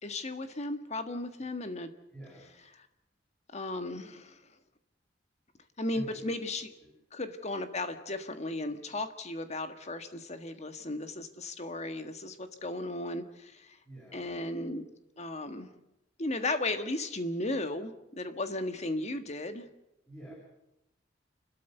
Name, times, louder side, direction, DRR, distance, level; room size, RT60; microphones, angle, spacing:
voice 1, 0.0-1.9 3.5-4.4 5.8-6.7 7.1-13.8 14.1-14.8 15.2-15.7 16.2-19.6, left 2 dB, 40° left, 8 dB, 1.7 m, -35 dB
voice 2, 2.1-2.6 5.9-6.3 6.6-6.9 13.8-14.4 20.0-20.3, right 1 dB, 15° left, -5 dB, 7.3 m, -48 dB
29.0 x 13.0 x 8.0 m, 0.87 s
head